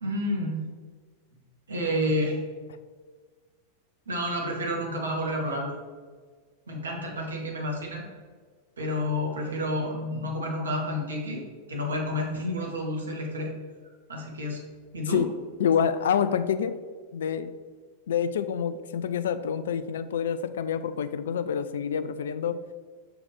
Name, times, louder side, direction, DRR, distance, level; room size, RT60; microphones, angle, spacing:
voice 1, 0.0-0.6 1.7-2.4 4.1-5.7 6.7-8.0 8.8-11.4 11.7-13.5 14.1-14.6 14.9-15.2, left 1 dB, 70° right, 0 dB, 1.3 m, -30 dB
voice 2, 15.6-16.7 17.1-17.5 18.1-22.6, left 7 dB, 60° left, 11 dB, 0.3 m, -27 dB
6.4 x 4.7 x 3.5 m, 1.5 s
figure-of-eight pair, 90°, 0 cm